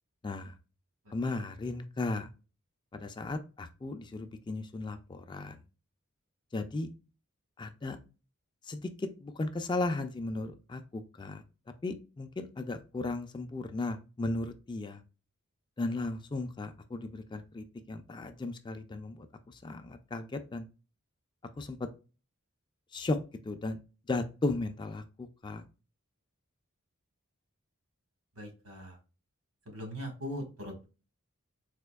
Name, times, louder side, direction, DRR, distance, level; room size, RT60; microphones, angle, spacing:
voice 1, 0.2-0.5 1.1-2.3 2.9-5.6 6.5-6.9 7.6-8.0 8.6-11.4 11.8-15.0 15.8-20.7 21.6-21.9 22.9-23.2 23.4-23.8 24.1-25.6, left 2 dB, 20° left, 8 dB, 0.3 m, -36 dB
voice 2, 28.4-29.0 29.7-30.9, equal, 85° right, 2 dB, 1.7 m, -40 dB
4.2 x 2.6 x 2.2 m, 0.32 s
head